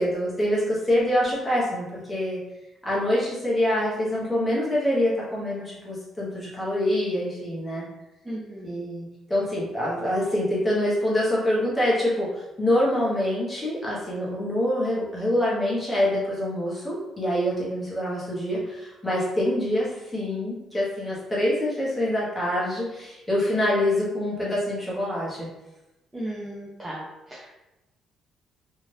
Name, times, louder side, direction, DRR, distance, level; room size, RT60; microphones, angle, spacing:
voice 1, 0.0-2.4 2.8-7.8 8.6-25.5, left 1 dB, 10° left, -7 dB, 0.9 m, -25 dB
voice 2, 8.3-8.8 26.1-27.5, right 1 dB, 10° right, -6 dB, 0.4 m, -36 dB
2.6 x 2.4 x 3.2 m, 0.98 s
cardioid pair, 160°, 0 cm